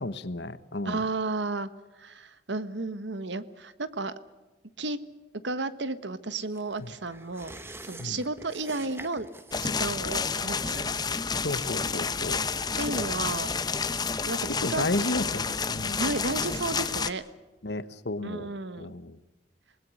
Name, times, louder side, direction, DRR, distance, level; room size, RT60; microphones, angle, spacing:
voice 1, 0.0-1.0 6.8-6.9 8.0-8.2 11.4-12.5 14.6-16.0 17.6-18.5 18.8-19.2, left 2 dB, 65° left, 13 dB, 1.2 m, -32 dB
voice 2, 0.8-1.7 2.0-4.1 4.8-5.0 5.4-9.3 9.6-10.9 12.8-13.5 14.3-14.9 16.0-17.2 18.2-18.9, right 2 dB, 75° right, 13 dB, 1.4 m, -33 dB
sound 1, 6.5-13.6 13.9-14.0, right 2 dB, 15° right, 1.2 m, -48 dB
sound 2, 9.5-17.1, left 5 dB, 20° left, 0.9 m, -30 dB
27.0 x 20.5 x 6.5 m, 1.2 s
head